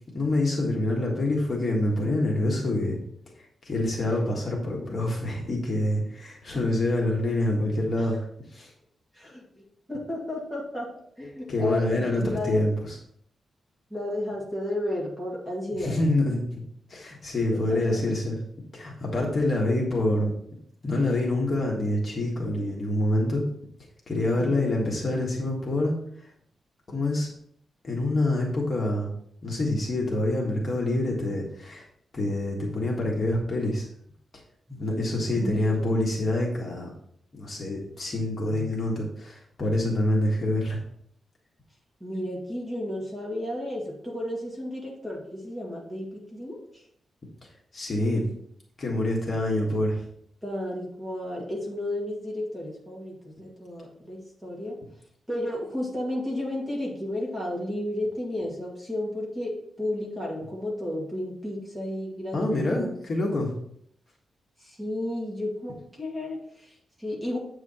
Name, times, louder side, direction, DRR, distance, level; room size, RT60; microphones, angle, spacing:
voice 1, 0.1-3.0 3.6-8.2 8.5-8.7 11.5-12.9 15.8-16.5 16.9-18.4 18.7-20.3 20.8-23.4 24.1-26.0 26.9-27.3 27.8-29.1 29.4-31.8 32.1-33.9 34.7-36.9 37.4-40.8 47.7-48.2 48.8-50.0 62.3-63.5, left 1 dB, 35° left, -2 dB, 1.6 m, -26 dB
voice 2, 9.1-9.6 9.9-10.9 11.2-12.6 13.9-16.0 17.5-18.0 24.3-24.8 35.4-35.8 38.5-39.0 42.0-46.8 50.4-54.8 55.3-62.9 64.6-67.4, left 1 dB, 10° right, -4 dB, 2.1 m, -33 dB
8.1 x 4.7 x 4.3 m, 0.67 s
wide cardioid pair, 165°, 0 cm